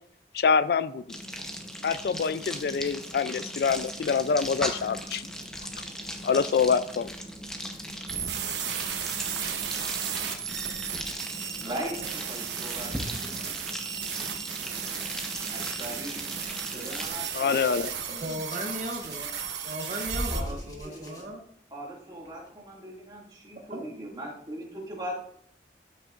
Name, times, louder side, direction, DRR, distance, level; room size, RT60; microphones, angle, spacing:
voice 1, 0.3-1.2 1.8-5.2 6.2-7.1 17.3-17.9, left 6 dB, 60° left, 15 dB, 0.3 m, -25 dB
sound 1, 1.1-17.1, equal, 5° left, 0.8 m, -38 dB
sound 2, 8.1-20.4, right 8 dB, 80° right, 1.0 m, -35 dB
voice 2, 11.6-13.6 15.5-16.2 16.7-17.8 20.3-21.4 21.7-25.2, right 1 dB, 25° right, -3 dB, 2.1 m, -39 dB
Hands, 17.3-21.2 22.3-22.5, equal, 20° left, 1.3 m, -39 dB
voice 3, 18.2-19.3 19.6-21.4 23.7-23.8, right 1 dB, 40° right, 2 dB, 0.9 m, -36 dB
13.0 x 6.5 x 2.5 m, 0.70 s
head